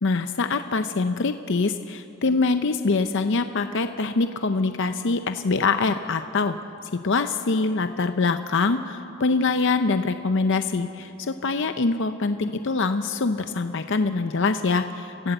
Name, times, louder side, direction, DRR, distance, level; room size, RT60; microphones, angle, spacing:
voice 1, 0.0-6.6 7.0-15.3, left 3 dB, 55° left, 8 dB, 0.6 m, -24 dB
28.0 x 15.5 x 7.9 m, 2.8 s
head